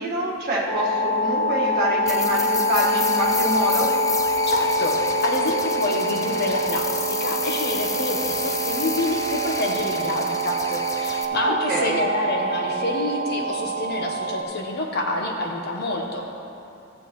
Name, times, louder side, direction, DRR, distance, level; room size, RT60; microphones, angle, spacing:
voice 1, 0.0-3.9 11.4-12.0, right 1 dB, 50° right, -4 dB, 1.6 m, -25 dB
sound 1, 0.7-14.4, right 1 dB, 85° right, 0.6 m, -25 dB
sound 2, 2.1-11.3, left 4 dB, 15° left, 0.3 m, -31 dB
voice 2, 4.5-4.9 5.2-16.3, left 2 dB, 50° left, 1 dB, 1.0 m, -27 dB
13.5 x 7.6 x 3.1 m, 2.7 s
head